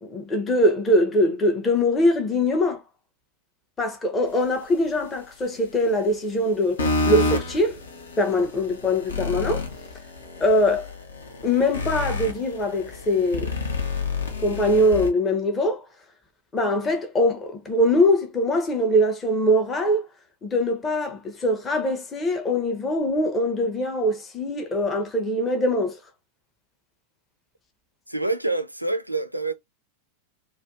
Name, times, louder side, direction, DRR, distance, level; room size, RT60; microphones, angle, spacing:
voice 1, 0.0-2.8 3.8-7.8 8.2-9.7 10.4-10.9 11.4-13.5 14.4-15.9 16.5-20.1 20.4-26.0, left 1 dB, 20° left, 0.6 m, -22 dB
sound 1, 6.8-15.1, left 3 dB, 70° left, 0.6 m, -29 dB
voice 2, 28.1-29.5, right 2 dB, 90° right, 0.4 m, -26 dB
2.5 x 2.2 x 2.4 m
figure-of-eight pair, 90°, 0 cm